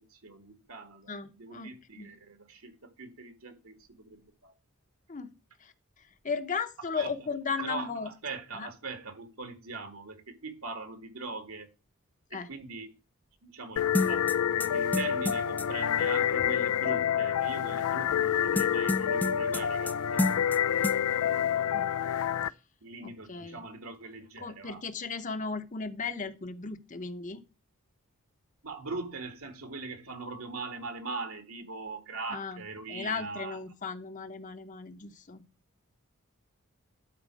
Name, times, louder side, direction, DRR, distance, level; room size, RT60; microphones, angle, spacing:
voice 1, 0.0-4.5 7.0-7.1 7.6-11.7 12.3-13.0 13.4-14.3 14.7-20.4 20.7-21.1 22.8-24.8 28.6-33.6, right 3 dB, 75° right, 2.2 m, -41 dB
voice 2, 1.1-2.1 5.1-5.3 5.6-8.1 8.5-8.7 12.3-12.5 21.7-21.9 23.0-23.6 24.4-27.4 32.3-32.6 32.9-35.4, left 5 dB, 35° left, 0.9 m, -36 dB
sound 1, 13.8-22.5, left 9 dB, 85° left, 0.4 m, -28 dB
sound 2, 13.9-15.7 18.6-19.9 20.2-20.6 20.8-21.0, left 1 dB, 10° left, 0.5 m, -30 dB
12.0 x 4.4 x 6.3 m
head